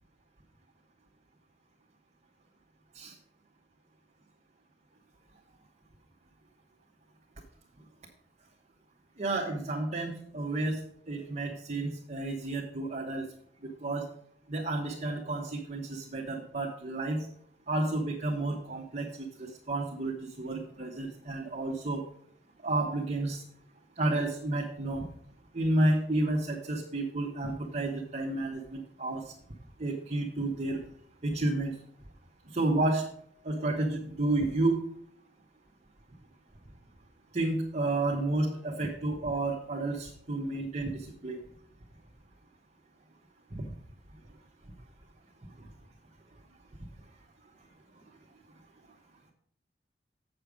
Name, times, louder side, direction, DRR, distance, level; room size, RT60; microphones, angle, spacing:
voice 1, 9.2-10.8 11.1-13.3 13.6-14.0 14.5-17.3 17.7-22.0 22.6-23.4 24.0-25.1 25.5-29.2 29.8-30.8 31.2-31.7 32.5-33.0 33.4-34.8 37.3-41.4 43.5-43.7 45.6-45.7, right 2 dB, 40° right, -2 dB, 1.1 m, -31 dB
8.0 x 6.7 x 5.0 m, 0.66 s
head